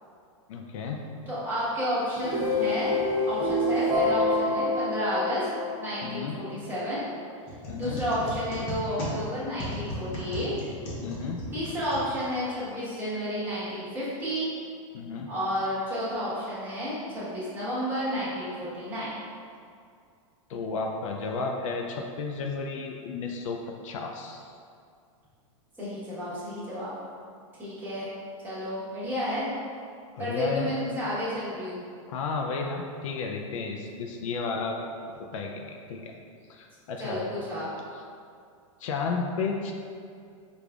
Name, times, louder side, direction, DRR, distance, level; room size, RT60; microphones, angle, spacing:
voice 1, 0.5-1.0 6.0-6.4 7.7-8.0 11.0-11.4 14.9-15.3 20.5-24.4 30.2-30.7 32.1-34.8 35.3-36.1 36.5-37.2 38.8-39.7, left 4 dB, 75° left, 2 dB, 0.4 m, -32 dB
voice 2, 1.3-2.9 3.2-5.5 5.8-7.0 7.7-10.5 11.5-14.5 15.3-19.1 25.8-26.9 27.6-28.1 28.4-29.5 30.2-31.8 37.0-37.7, equal, 10° right, -11 dB, 1.1 m, -31 dB
sound 1, 1.9-6.2, left 2 dB, 30° right, 0.7 m, -27 dB
sound 2, 7.4-12.6, equal, 35° left, 0.8 m, -36 dB
4.9 x 2.4 x 2.3 m, 2.3 s
supercardioid pair, 145°, 17 cm